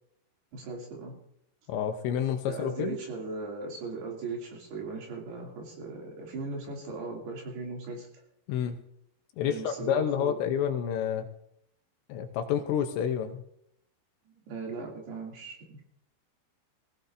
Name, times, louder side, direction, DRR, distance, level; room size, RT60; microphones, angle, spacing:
voice 1, 0.5-1.1 2.5-8.1 9.4-10.3 14.5-15.8, right 3 dB, 60° right, -1 dB, 4.4 m, -38 dB
voice 2, 1.7-3.0 8.5-8.8 9.4-11.3 12.1-13.4, left 9 dB, 80° left, 6 dB, 2.9 m, -29 dB
21.0 x 16.0 x 2.6 m, 0.75 s
omnidirectional pair, 5.4 m